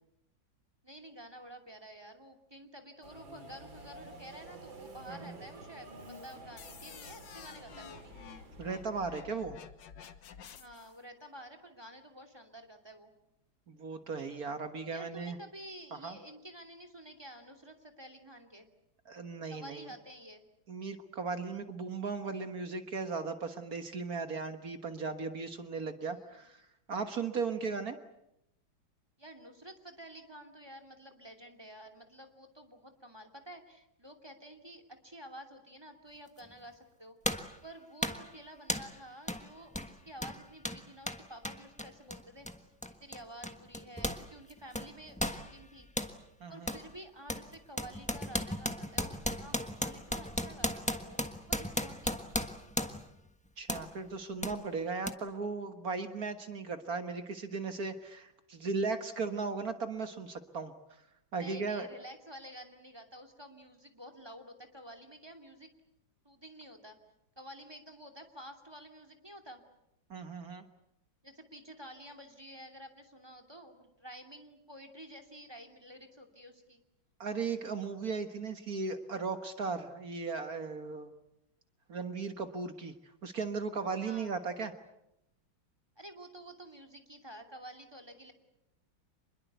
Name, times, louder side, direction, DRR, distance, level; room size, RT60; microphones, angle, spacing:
voice 1, 0.8-8.2 10.6-13.1 14.9-18.7 19.5-20.4 26.0-26.3 29.2-37.2 37.6-42.7 43.0-45.9 46.5-51.2 51.5-52.7 61.3-65.7 66.2-67.0 67.4-69.6 71.2-76.8 84.0-84.3 86.0-88.3, equal, 10° right, 7 dB, 2.7 m, -50 dB
Subway metro underground, 3.0-9.2, right 2 dB, 75° right, 3.3 m, -51 dB
sound 1, 6.6-11.0, left 7 dB, 65° left, 1.9 m, -50 dB
voice 2, 8.6-9.6 13.7-15.4 16.0-16.2 19.1-19.9 20.7-26.6 26.9-28.0 46.4-46.7 53.6-60.7 61.3-61.9 70.1-70.7 77.2-81.1 81.9-82.9 83.2-84.7, right 4 dB, 50° right, 8 dB, 1.8 m, -37 dB
sound 2, 36.4-36.5 37.2-37.6 38.0-38.3 38.7-39.0 39.3-39.4 39.7-44.2 44.5-46.1 46.7-46.9 47.3-53.1 53.7-53.9 54.4-54.6 55.1-55.2, left 1 dB, 5° left, 1.1 m, -36 dB
26.5 x 21.5 x 8.2 m, 0.83 s
omnidirectional pair, 2.1 m